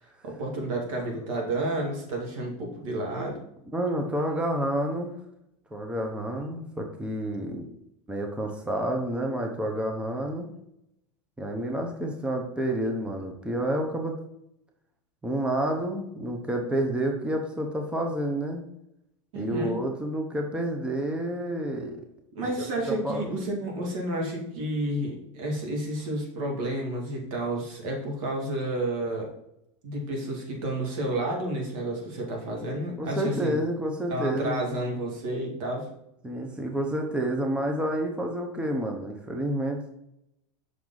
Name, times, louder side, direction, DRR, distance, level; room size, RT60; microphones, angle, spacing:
voice 1, 0.2-3.4 19.3-19.8 22.3-29.3 29.8-33.6 34.1-35.9, right 1 dB, 80° right, 0 dB, 2.3 m, -31 dB
voice 2, 3.7-5.2 5.7-7.7 8.1-10.5 11.4-14.2 15.2-18.6 19.3-22.0 22.4-22.5 22.9-23.3 33.0-34.6 36.2-39.9, right 1 dB, 5° right, 2 dB, 0.8 m, -29 dB
6.2 x 4.6 x 3.9 m, 0.80 s
supercardioid pair, 125°, 16 cm